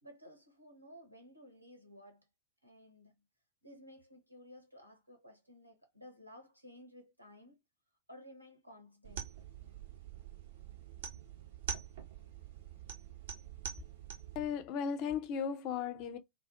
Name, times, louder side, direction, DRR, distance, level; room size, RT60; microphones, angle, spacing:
voice 1, 0.0-2.3 2.6-3.1 3.6-7.6 8.1-9.3, equal, 90° right, 0.9 m, -55 dB
sound 1, 9.0-14.5, right 8 dB, 60° right, 0.7 m, -45 dB
voice 2, 14.3-16.2, left 7 dB, 40° left, 0.4 m, -36 dB
2.3 x 2.3 x 2.3 m
figure-of-eight pair, 90°, 0 cm